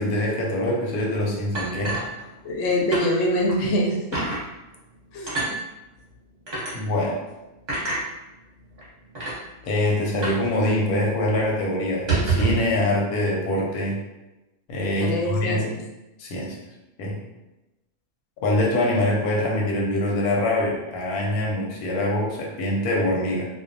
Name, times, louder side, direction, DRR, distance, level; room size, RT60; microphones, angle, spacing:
voice 1, 0.0-2.0 6.7-7.2 9.6-14.0 14.7-15.7 16.2-16.6 17.0-17.2 18.4-23.5, left 1 dB, 85° left, -2 dB, 1.1 m, -24 dB
sound 1, 1.5-2.6 2.9-3.1 3.5-3.6 4.1-4.4 5.3-5.5 6.5-6.7 7.7-8.0 8.8-8.9 9.1-9.4 10.2-10.5 10.7-10.8 11.2-11.4 11.9-12.7, right 3 dB, 35° right, 0.8 m, -26 dB
voice 2, 2.4-4.0 5.1-5.6 15.0-15.7, left 1 dB, 65° left, -2 dB, 0.8 m, -24 dB
2.5 x 2.0 x 2.6 m, 1.0 s
omnidirectional pair, 1.5 m